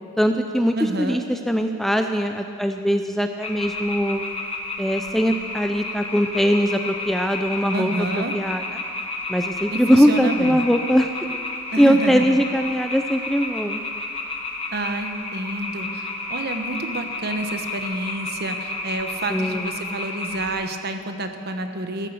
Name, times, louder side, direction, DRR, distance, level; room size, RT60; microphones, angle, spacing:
voice 1, 0.2-4.2 4.8-8.6 9.3-11.1 11.8-13.8 19.3-19.8, equal, ahead, 5 dB, 0.5 m, -21 dB
voice 2, 0.7-1.2 7.7-8.3 9.7-10.6 11.7-12.4 14.7-22.1, right 2 dB, 50° right, 7 dB, 1.1 m, -29 dB
sound 1, 3.4-20.5, left 2 dB, 25° left, 1.4 m, -31 dB
15.0 x 14.0 x 6.8 m, 2.5 s
head